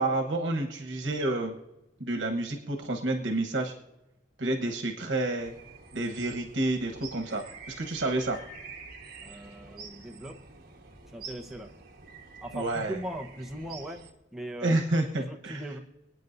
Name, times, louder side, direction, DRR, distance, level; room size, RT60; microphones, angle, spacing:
voice 1, 0.0-1.5 2.0-3.7 4.4-5.5 5.9-8.4 12.5-13.0 14.6-15.6, right 2 dB, 80° right, 3 dB, 1.2 m, -29 dB
sound 1, 5.4-14.1, right 4 dB, 55° right, 1.5 m, -47 dB
voice 2, 9.2-10.4 11.1-11.7 12.4-14.0 14.3-14.7 15.2-15.8, right 1 dB, ahead, 2 dB, 1.0 m, -39 dB
27.0 x 9.4 x 2.7 m, 0.99 s
head